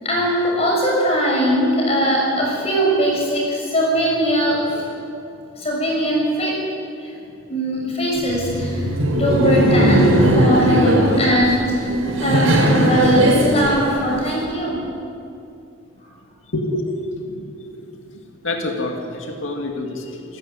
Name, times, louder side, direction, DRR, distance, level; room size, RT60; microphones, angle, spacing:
voice 1, 0.0-4.9 5.6-6.5 7.0-7.1 7.5-11.9 12.2-14.8, equal, 30° left, -3 dB, 6.9 m, -20 dB
Laughter, 8.2-14.4, right 1 dB, 80° right, 4.6 m, -18 dB
voice 2, 16.5-17.9 18.4-20.4, left 2 dB, 70° left, 2 dB, 2.3 m, -27 dB
27.0 x 13.0 x 9.5 m, 2.6 s
head